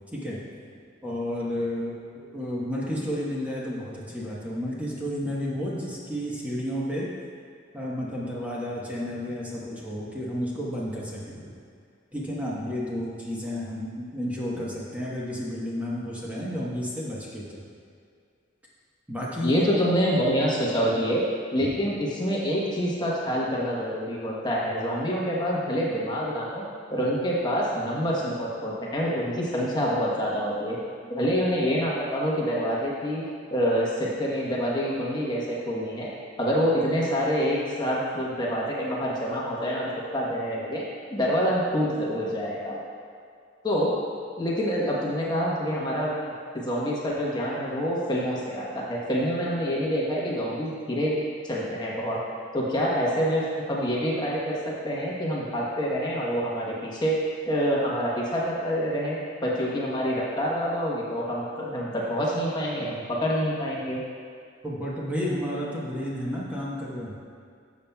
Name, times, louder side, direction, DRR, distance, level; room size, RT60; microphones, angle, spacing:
voice 1, 1.0-1.9 2.3-7.1 7.7-11.5 12.1-17.6 19.1-19.6 64.6-67.2, equal, 10° right, -6 dB, 1.1 m, -31 dB
voice 2, 19.4-21.2 21.5-26.6 26.9-30.8 31.0-33.2 33.5-36.1 36.4-40.8 41.1-42.8 43.6-43.9 44.4-46.3 46.6-51.1 51.4-52.2 52.5-57.2 57.5-64.0, equal, 20° left, -5 dB, 1.1 m, -26 dB
12.5 x 7.1 x 2.3 m, 2.3 s
head